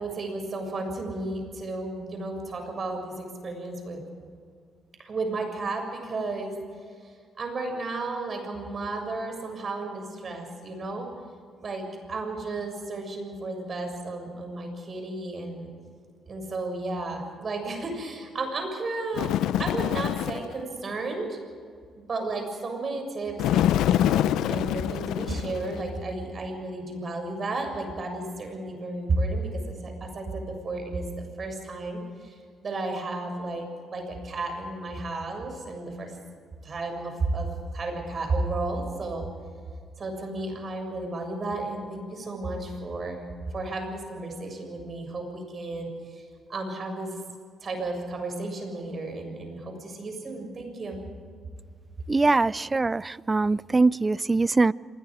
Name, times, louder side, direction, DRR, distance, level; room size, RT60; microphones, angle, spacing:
voice 1, 0.0-4.0 5.0-6.5 7.0-7.1 7.4-11.1 11.6-15.7 16.3-19.3 19.6-21.4 21.9-32.4 32.6-33.7 33.9-36.1 36.6-39.2 40.0-43.3 43.5-46.2 46.5-47.1 47.6-51.0, right 2 dB, 45° right, 4 dB, 6.8 m, -33 dB
Bird, 19.1-20.5 23.4-25.9, left 11 dB, 85° left, 0.6 m, -25 dB
voice 2, 52.1-54.7, right 3 dB, 25° right, 21 dB, 0.4 m, -22 dB
26.5 x 21.0 x 5.1 m, 2.1 s
cardioid pair, 90°, 0 cm